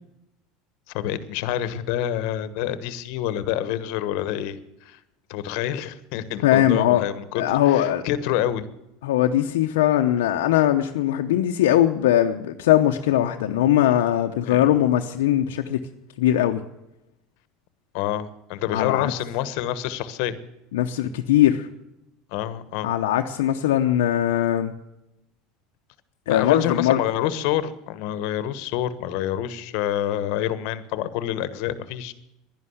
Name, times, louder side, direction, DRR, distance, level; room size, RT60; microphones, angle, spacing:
voice 1, 0.9-4.6 4.8-5.0 5.3-8.7 14.5-14.6 17.9-20.4 22.3-22.9 26.3-32.1, left 11 dB, 70° left, 14 dB, 1.1 m, -27 dB
voice 2, 6.4-7.0 7.4-8.0 9.0-15.8 16.2-16.6 18.7-19.1 20.7-21.7 22.8-24.7 26.3-27.0, left 12 dB, 90° left, 4 dB, 0.8 m, -20 dB
11.0 x 11.0 x 7.9 m, 0.87 s
supercardioid pair, 115°, 0 cm